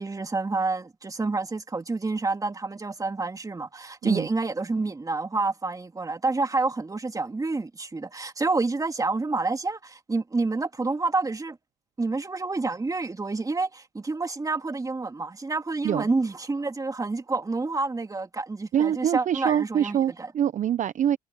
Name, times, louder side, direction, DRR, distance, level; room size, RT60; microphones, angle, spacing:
voice 1, 0.0-11.6 12.0-20.3, right 3 dB, 20° right, 2.2 m, -28 dB
voice 2, 18.7-21.2, right 9 dB, 50° right, 0.8 m, -24 dB
supercardioid pair, 70°, 16 cm